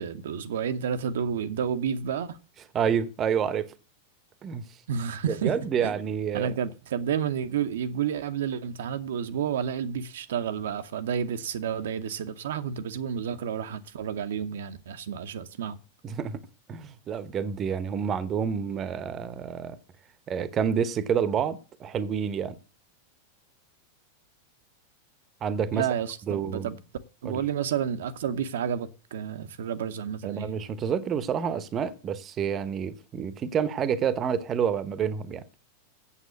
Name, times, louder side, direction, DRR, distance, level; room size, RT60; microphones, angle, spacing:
voice 1, 0.0-2.4 4.9-5.5 5.8-5.9 6.3-15.8 25.7-26.8 27.2-30.5, right 8 dB, 60° right, 0.8 m, -30 dB
voice 2, 2.7-3.7 4.4-4.6 5.3-6.5 16.0-16.4 16.7-19.8 20.3-22.6 25.4-25.9 26.3-26.7 27.2-27.4 30.2-35.4, right 7 dB, 30° right, 0.9 m, -28 dB
8.4 x 7.5 x 8.0 m
figure-of-eight pair, 90°, 0 cm